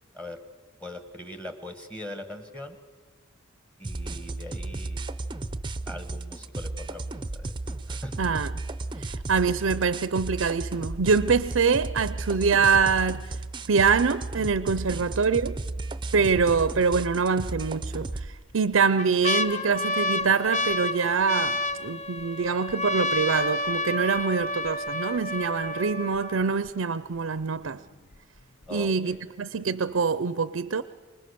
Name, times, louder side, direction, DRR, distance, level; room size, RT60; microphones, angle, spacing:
voice 1, 0.8-2.8 3.8-5.0 5.9-7.1 7.4-7.5 7.9-8.2 14.9-15.0 28.7-29.2, left 1 dB, 5° left, 1.4 m, -40 dB
sound 1, 3.8-18.3, right 2 dB, 25° right, 0.6 m, -34 dB
voice 2, 8.2-8.5 9.0-13.3 13.7-15.6 16.1-27.8 28.7-30.8, right 5 dB, 70° right, 0.6 m, -25 dB
sound 2, 15.8-16.3 16.7-16.8 17.7-18.3 18.7-26.7 27.4-27.5 27.7-28.1 28.6-28.7, left 2 dB, 35° left, 0.7 m, -30 dB
25.5 x 20.5 x 6.8 m
head